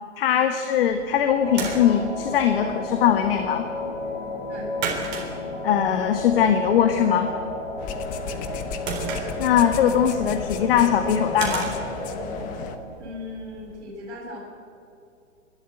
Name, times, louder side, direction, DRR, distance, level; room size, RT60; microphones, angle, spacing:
voice 1, 0.2-3.7 5.6-7.3 9.4-11.7, left 9 dB, 50° left, 7 dB, 1.5 m, -21 dB
sound 1, 0.8-13.8, right 5 dB, 25° right, 3.9 m, -38 dB
sound 2, 1.4-12.8, left 2 dB, 90° left, 5.4 m, -33 dB
sound 3, 7.8-12.8, left 7 dB, 20° left, 1.1 m, -35 dB
voice 2, 13.0-14.4, left 2 dB, 55° right, -3 dB, 6.7 m, -38 dB
28.5 x 12.5 x 9.1 m, 2.6 s
hypercardioid pair, 145°, 37 cm